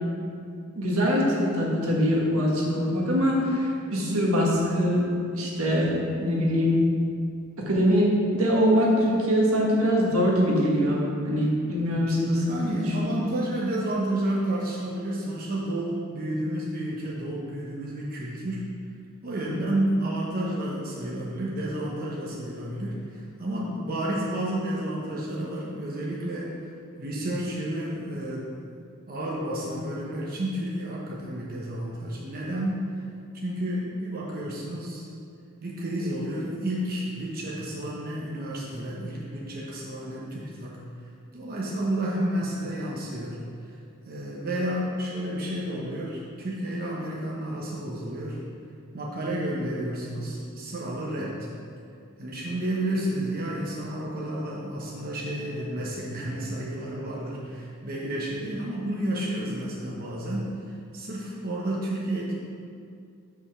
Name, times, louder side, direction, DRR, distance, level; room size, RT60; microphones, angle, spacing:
voice 1, 0.7-6.8 7.6-13.0 19.5-19.6, equal, 80° right, -3 dB, 1.5 m, -23 dB
voice 2, 12.5-18.7 19.2-26.7 27.0-28.5 29.1-32.8 33.3-35.1 35.6-40.8 41.3-43.4 44.0-48.4 48.9-51.5 52.2-62.3, right 1 dB, 45° right, -5 dB, 1.0 m, -31 dB
5.5 x 5.3 x 6.3 m, 2.4 s
head